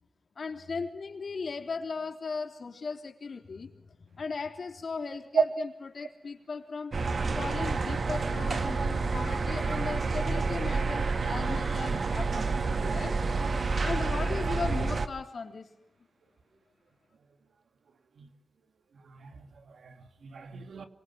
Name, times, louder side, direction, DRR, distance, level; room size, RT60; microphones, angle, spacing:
voice 1, 0.4-6.9 7.3-13.2 13.8-15.7, left 4 dB, 70° left, 3.4 m, -37 dB
sound 1, 6.9-15.1, right 4 dB, 65° right, 1.7 m, -29 dB
voice 2, 19.0-20.9, right 6 dB, 85° right, 2.2 m, -32 dB
26.5 x 26.5 x 5.9 m
cardioid pair, 55°, 0 cm